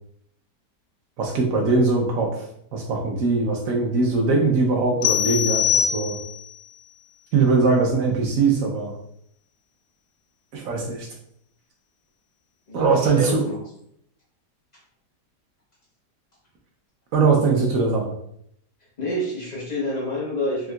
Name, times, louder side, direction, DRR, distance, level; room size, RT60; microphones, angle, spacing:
voice 1, 1.2-2.4 2.7-6.2 7.3-9.0 10.5-11.1 12.7-13.4 17.1-18.1, right 4 dB, 65° right, 1 dB, 0.9 m, -21 dB
sound 1, 5.0-6.5, left 9 dB, 85° left, 1.2 m, -23 dB
voice 2, 12.7-13.6 19.0-20.7, left 1 dB, 50° left, -4 dB, 0.5 m, -28 dB
3.6 x 2.7 x 2.2 m, 0.71 s
omnidirectional pair, 1.8 m